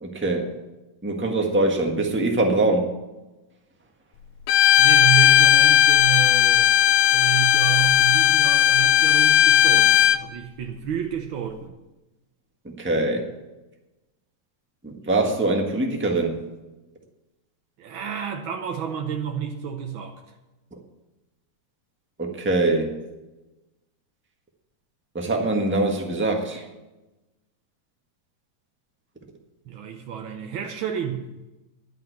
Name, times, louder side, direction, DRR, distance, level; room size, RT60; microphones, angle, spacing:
voice 1, 0.0-0.5 1.0-2.9 12.8-13.3 14.8-16.4 22.2-22.9 25.1-26.6, right 2 dB, 10° right, 1 dB, 0.5 m, -23 dB
Bowed string instrument, 4.5-10.2, left 11 dB, 80° left, 1.5 m, -16 dB
voice 2, 4.8-6.7 7.1-11.7 17.8-20.2 29.6-31.2, right 8 dB, 65° right, 3 dB, 1.2 m, -30 dB
11.0 x 7.4 x 9.3 m, 1.1 s
omnidirectional pair, 3.4 m